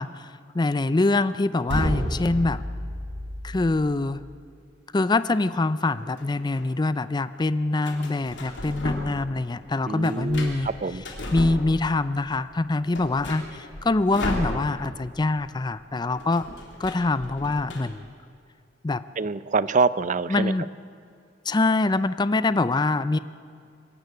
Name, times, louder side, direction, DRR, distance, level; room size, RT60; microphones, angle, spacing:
voice 1, 0.0-2.6 3.4-4.2 4.9-10.7 11.3-16.5 16.8-18.1 18.8-19.0 20.3-20.7 21.5-23.2, left 2 dB, 25° left, 14 dB, 0.5 m, -24 dB
sound 1, 1.7-3.7, equal, 75° right, 6.7 m, -29 dB
sound 2, 5.9-6.7 7.8-9.3 9.6-12.1 12.4-12.5 12.8-15.0 15.3-15.5 15.7-17.8, left 1 dB, 75° left, 3.4 m, -35 dB
voice 2, 9.9-11.0 19.2-20.5, right 4 dB, 45° right, 16 dB, 0.6 m, -25 dB
23.5 x 13.5 x 9.4 m, 2.4 s
head